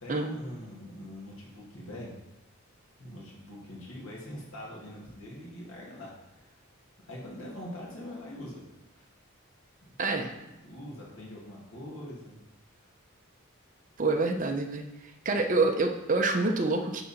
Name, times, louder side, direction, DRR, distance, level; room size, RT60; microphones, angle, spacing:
voice 1, 0.0-2.1 3.0-6.6 7.1-8.6 8.9-9.1 9.8-9.9 10.6-12.4 12.7-12.8 15.3-15.6, left 1 dB, 75° left, -3 dB, 2.0 m, -43 dB
voice 2, 10.0-10.3 14.0-14.8 15.2-17.0, right 3 dB, 40° right, 3 dB, 0.7 m, -26 dB
10.0 x 3.8 x 4.2 m, 0.96 s
head